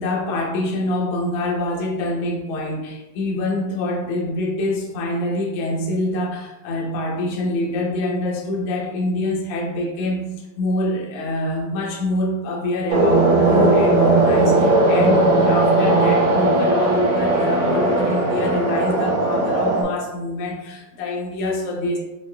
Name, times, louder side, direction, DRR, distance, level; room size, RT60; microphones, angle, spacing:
voice 1, 0.0-22.0, left 2 dB, 85° left, -1 dB, 1.3 m, -25 dB
sound 1, 12.9-19.8, right 2 dB, 75° right, 1.4 m, -17 dB
6.2 x 2.3 x 2.2 m, 1.0 s
omnidirectional pair, 3.5 m